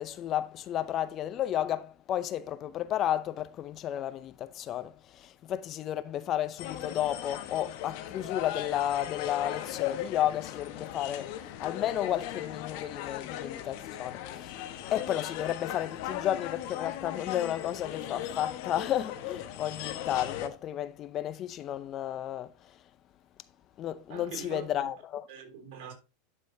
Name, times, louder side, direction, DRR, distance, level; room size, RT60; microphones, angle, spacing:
voice 1, 0.0-11.3 11.6-14.6 14.9-22.5 23.8-25.2, left 11 dB, 40° left, 0.6 m, -32 dB
sound 1, 6.6-20.5, left 11 dB, 55° left, 1.2 m, -38 dB
voice 2, 24.1-24.9 25.3-25.9, right 7 dB, 55° right, 3.4 m, -43 dB
11.5 x 5.5 x 2.8 m
hypercardioid pair, 90°, 0 cm